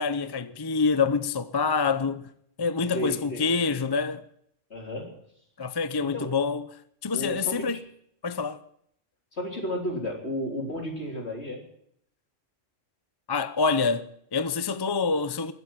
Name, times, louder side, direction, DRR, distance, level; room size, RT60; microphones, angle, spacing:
voice 1, 0.0-2.3 2.6-4.2 5.6-6.6 7.0-7.8 8.2-8.6 13.3-15.5, left 5 dB, 30° left, 0.5 m, -26 dB
voice 2, 2.9-3.5 4.7-5.2 6.0-6.4 7.1-7.8 9.3-11.6, equal, 60° left, 4.0 m, -33 dB
22.0 x 8.1 x 7.4 m
omnidirectional pair, 1.3 m